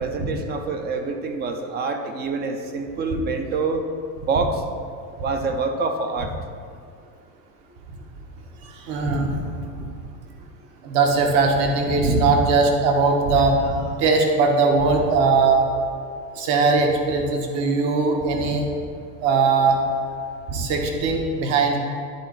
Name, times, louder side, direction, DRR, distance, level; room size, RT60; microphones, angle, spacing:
voice 1, 0.0-3.9 4.3-4.6 5.2-6.3, right 4 dB, 25° right, 6 dB, 0.3 m, -26 dB
voice 2, 8.6-9.5 10.8-15.7 16.3-18.7 19.2-19.8 20.5-21.8, right 4 dB, 60° right, 2 dB, 1.4 m, -20 dB
10.5 x 4.0 x 4.6 m, 2.3 s
supercardioid pair, 110°, 49 cm